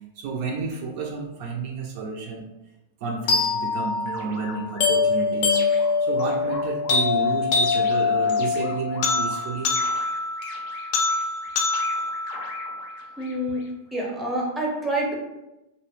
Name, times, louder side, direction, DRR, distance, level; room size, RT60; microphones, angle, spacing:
voice 1, 0.2-2.4 3.0-5.6 6.0-9.9, right 4 dB, 50° right, 0 dB, 0.4 m, -31 dB
sound 1, 3.3-13.3, left 4 dB, 50° left, 0.5 m, -24 dB
voice 2, 13.2-13.6 13.9-15.1, right 1 dB, 5° right, -3 dB, 0.6 m, -27 dB
2.5 x 2.0 x 2.9 m, 0.96 s
supercardioid pair, 145°, 0 cm